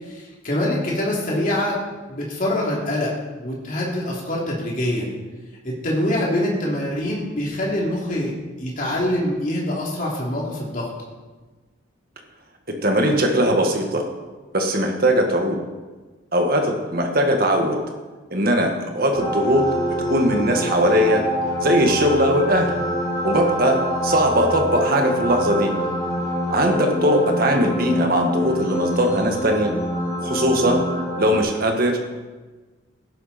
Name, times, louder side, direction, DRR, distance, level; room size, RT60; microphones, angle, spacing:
voice 1, 0.1-1.8 2.1-3.1 3.4-5.1 5.6-8.3 8.6-10.9, left 1 dB, 40° left, -4 dB, 3.2 m, -24 dB
voice 2, 12.7-14.0 14.5-15.6 16.3-17.8 18.3-19.7 20.1-21.2 21.6-22.7 23.2-25.7 26.5-29.7 30.2-30.9 31.2-32.0, equal, 45° right, 3 dB, 1.8 m, -20 dB
sound 1, 19.1-31.4, equal, 25° left, 5.4 m, -25 dB
16.0 x 11.5 x 4.4 m, 1.3 s
head